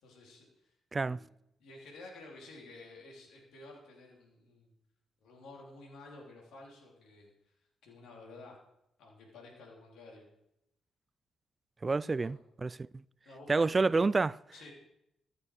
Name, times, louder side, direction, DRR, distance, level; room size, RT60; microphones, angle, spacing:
voice 1, 0.0-1.3 1.6-4.7 5.2-7.5 7.8-8.5 9.0-10.3 12.0-12.4 13.2-14.0 14.5-14.7, left 2 dB, 80° left, 3.3 m, -52 dB
voice 2, 0.9-1.2 11.8-12.8 13.5-14.4, right 3 dB, 30° right, 0.3 m, -28 dB
14.0 x 8.5 x 4.9 m
supercardioid pair, 65°, 0 cm